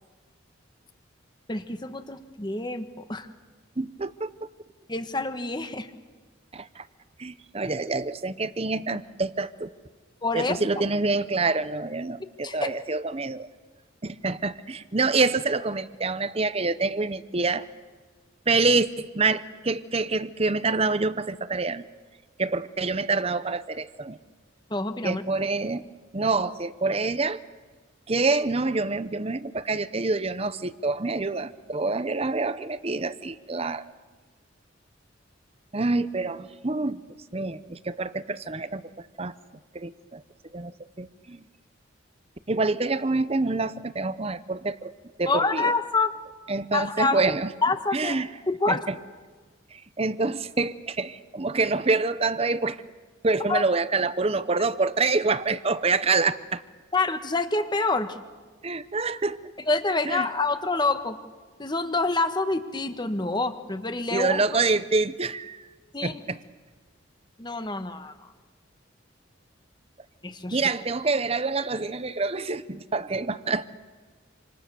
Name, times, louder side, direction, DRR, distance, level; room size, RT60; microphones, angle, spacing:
voice 1, 1.5-3.3 4.9-5.9 10.2-10.6 12.4-12.7 24.7-25.2 45.3-46.1 46.7-47.2 47.6-48.9 53.5-53.6 56.9-58.2 59.7-61.2 61.6-64.4 65.9-66.2 67.4-68.3 70.2-70.6, left 3 dB, 20° left, 9 dB, 1.4 m, -27 dB
voice 2, 3.8-4.3 6.5-6.9 7.2-9.8 10.3-13.5 14.0-17.7 18.5-21.9 22.4-24.2 25.0-25.8 26.1-27.4 28.1-33.9 35.7-37.0 37.3-39.3 39.7-40.2 40.5-41.4 42.5-44.9 45.2-45.7 46.5-47.5 47.9-48.3 48.7-49.0 49.7-52.8 53.2-56.6 58.6-59.5 60.0-60.3 64.1-65.7 66.0-66.4 70.5-73.7, right 3 dB, 30° right, 14 dB, 0.8 m, -26 dB
27.5 x 27.0 x 7.0 m, 1.4 s
head